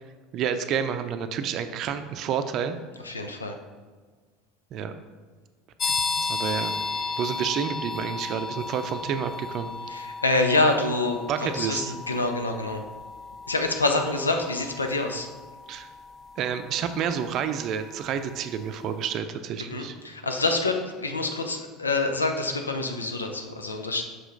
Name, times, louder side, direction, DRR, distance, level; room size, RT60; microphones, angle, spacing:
voice 1, 0.3-2.8 4.7-4.9 5.8-6.7 7.2-9.7 11.3-11.9 15.7-15.9 16.4-20.0, right 8 dB, 50° right, 9 dB, 0.5 m, -29 dB
voice 2, 3.0-3.6 9.9-12.9 13.5-15.3 19.7-24.0, left 2 dB, 85° left, 5 dB, 0.6 m, -26 dB
sound 1, 5.8-18.3, left 4 dB, 35° left, 0.4 m, -34 dB
6.0 x 5.0 x 3.8 m, 1.5 s
figure-of-eight pair, 70°, 0 cm